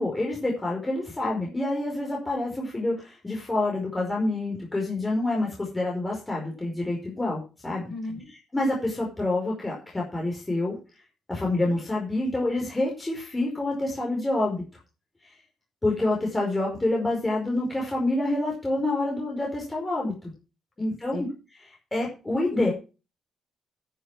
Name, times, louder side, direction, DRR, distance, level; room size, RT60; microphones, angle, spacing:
voice 1, 0.0-7.9 8.5-10.7 11.3-14.6 15.8-20.3 20.8-21.3 21.9-22.7, left 2 dB, 15° left, -2 dB, 5.0 m, -27 dB
voice 2, 7.9-8.3 20.8-21.2 22.5-22.7, left 2 dB, 40° left, 1 dB, 7.6 m, -34 dB
10.0 x 8.1 x 6.3 m, 0.32 s
cardioid pair, 90°, 0 cm